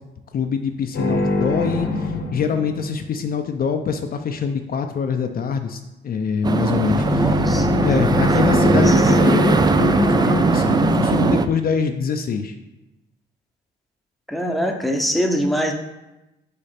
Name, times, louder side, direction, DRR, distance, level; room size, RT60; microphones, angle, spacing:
voice 1, 0.3-7.4 7.8-12.5, left 6 dB, 50° left, 6 dB, 0.5 m, -24 dB
sound 1, 0.9-3.2 6.8-11.3, left 2 dB, 65° left, 0.9 m, -22 dB
sound 2, 6.4-11.5, right 4 dB, 20° right, 0.3 m, -19 dB
voice 2, 7.1-7.7 8.3-8.4 8.9-9.0 14.3-15.7, equal, ahead, 3 dB, 0.7 m, -23 dB
5.0 x 4.8 x 4.3 m, 0.98 s
cardioid pair, 90°, 20 cm